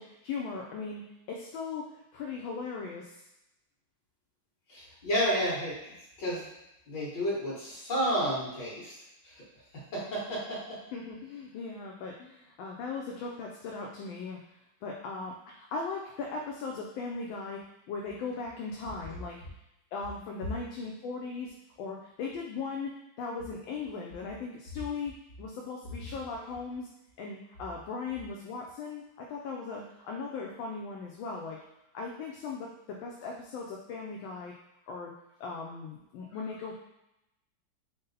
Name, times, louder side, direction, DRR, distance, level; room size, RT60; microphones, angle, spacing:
voice 1, 0.0-3.2 10.9-17.6 17.9-19.4 19.9-26.9 27.2-31.6 31.9-34.5 34.9-35.1 35.4-36.7, left 4 dB, 75° left, -1 dB, 1.3 m, -38 dB
voice 2, 4.7-6.5 6.9-8.9 9.2-9.4 9.9-10.8, equal, 60° left, -6 dB, 2.1 m, -31 dB
5.4 x 2.0 x 3.9 m, 0.89 s
omnidirectional pair, 2.2 m